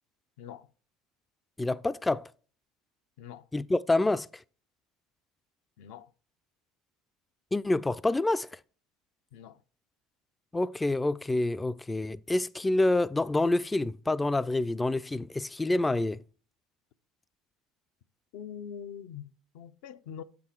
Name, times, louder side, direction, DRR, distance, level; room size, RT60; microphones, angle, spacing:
voice 1, 1.6-2.3 3.5-4.4 7.5-8.6 10.5-16.2, left 2 dB, 15° left, 0.3 m, -27 dB
voice 2, 5.8-6.1 9.3-9.6 18.3-20.2, left 8 dB, 75° left, 0.5 m, -43 dB
7.3 x 6.1 x 4.3 m
hypercardioid pair, 85°, 0 cm